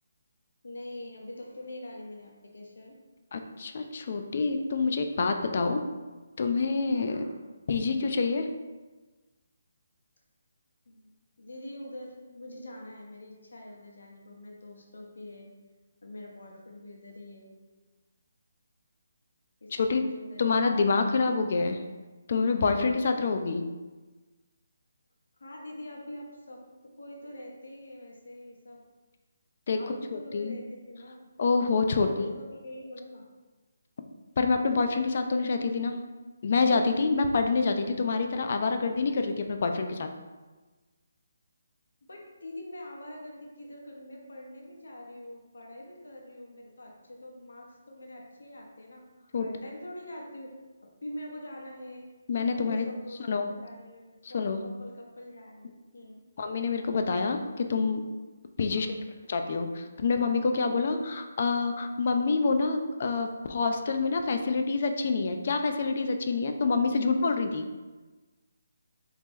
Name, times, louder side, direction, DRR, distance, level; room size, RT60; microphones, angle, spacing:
voice 1, 0.6-3.0 5.9-6.0 7.1-7.4 10.9-11.1 11.4-15.5 16.0-17.6 19.6-20.8 25.4-28.8 29.7-31.3 32.0-33.2 42.0-50.5 51.0-52.1 52.5-56.2 58.7-58.9, left 1 dB, 90° left, -1 dB, 0.9 m, -44 dB
voice 2, 3.3-5.8 6.4-7.2 7.7-8.5 19.7-20.0 20.4-21.8 22.3-23.7 29.7-30.6 31.4-32.3 34.4-36.0 36.4-40.1 49.3-49.5 52.3-52.8 53.3-53.5 54.3-54.6 56.4-58.0 58.6-58.9 59.3-67.7, left 4 dB, 45° left, 6 dB, 0.3 m, -27 dB
2.9 x 2.8 x 3.6 m, 1.3 s
hypercardioid pair, 170°, 0 cm